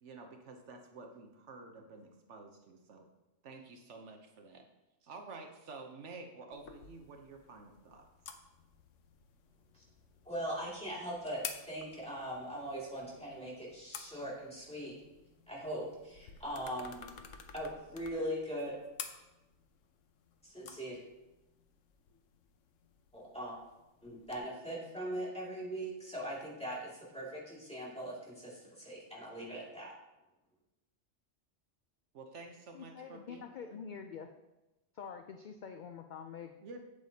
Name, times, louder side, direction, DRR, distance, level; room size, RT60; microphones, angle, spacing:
voice 1, 0.0-3.1 3.4-4.6 5.0-8.1 32.1-33.8 36.6-36.8, right 3 dB, 70° right, 3 dB, 1.1 m, -50 dB
sound 1, 6.5-24.4, left 7 dB, 85° left, 1.1 m, -52 dB
voice 2, 10.3-14.9 15.5-17.0 17.5-18.7 20.4-21.0 23.1-23.5 24.0-29.9, equal, 5° left, -6 dB, 2.3 m, -40 dB
voice 3, 32.7-34.3 34.9-36.5, left 6 dB, 60° left, 6 dB, 0.5 m, -46 dB
8.3 x 8.0 x 2.8 m, 1.0 s
omnidirectional pair, 1.3 m